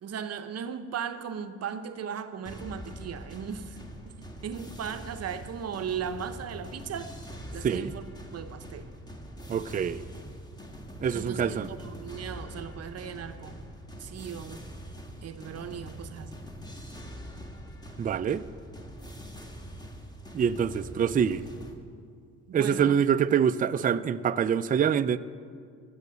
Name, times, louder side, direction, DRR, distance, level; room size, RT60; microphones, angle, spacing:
voice 1, 0.0-3.8 4.0-7.1 7.5-8.0 8.3-8.9 11.1-13.7 14.0-14.7 15.2-16.4 22.5-23.0, right 7 dB, 55° right, 10 dB, 0.7 m, -37 dB
sound 1, 2.4-21.7, equal, 15° left, 1.6 m, -43 dB
voice 2, 9.5-10.0 11.0-11.7 18.0-18.4 20.3-21.5 22.5-25.2, right 8 dB, 30° right, 11 dB, 0.4 m, -25 dB
15.0 x 7.3 x 6.8 m, 2.2 s
cardioid pair, 90°, 30 cm